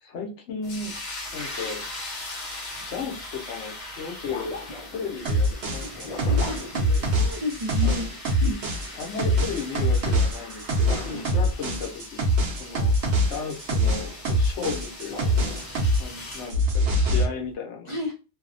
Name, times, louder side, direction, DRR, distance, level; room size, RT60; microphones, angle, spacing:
voice 1, 0.0-0.9 1.3-1.8 2.9-4.5 4.8-6.4 6.9-7.0 7.8-8.1 8.9-12.2 12.6-12.9 13.3-15.4 16.0-17.9, left 5 dB, 85° left, 2 dB, 1.0 m, -35 dB
sound 1, 0.6-16.6, left 2 dB, 45° left, 0.7 m, -40 dB
sound 2, 2.7-2.9 4.3-7.6 10.6-12.1 15.1-16.3, left 2 dB, 70° left, 0.3 m, -38 dB
sound 3, 5.3-16.0 16.3-17.3, equal, 75° right, 0.9 m, -24 dB
voice 2, 7.1-8.1 8.4-8.6 17.9-18.1, left 1 dB, 45° right, -2 dB, 0.4 m, -31 dB
2.7 x 2.0 x 2.5 m, 0.31 s
omnidirectional pair, 1.2 m